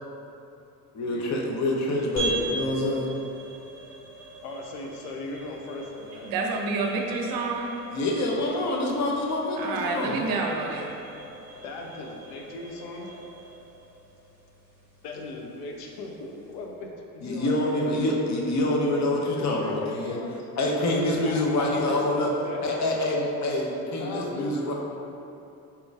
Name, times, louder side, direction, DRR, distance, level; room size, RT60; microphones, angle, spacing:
voice 1, 0.9-3.1 7.9-10.4 17.2-20.2 20.6-22.3 22.6-24.7, left 1 dB, 35° left, -1 dB, 0.7 m, -26 dB
sound 1, 2.2-16.8, right 2 dB, 20° left, 1.4 m, -41 dB
voice 2, 4.4-6.3 11.6-13.1 15.0-18.0 18.9-20.4 21.2-23.0 24.0-24.7, left 3 dB, 70° left, 0 dB, 0.7 m, -38 dB
voice 3, 6.2-7.8 9.6-10.9, right 3 dB, 45° right, 1 dB, 0.7 m, -28 dB
4.3 x 3.8 x 2.4 m, 2.7 s
hypercardioid pair, 60°, 49 cm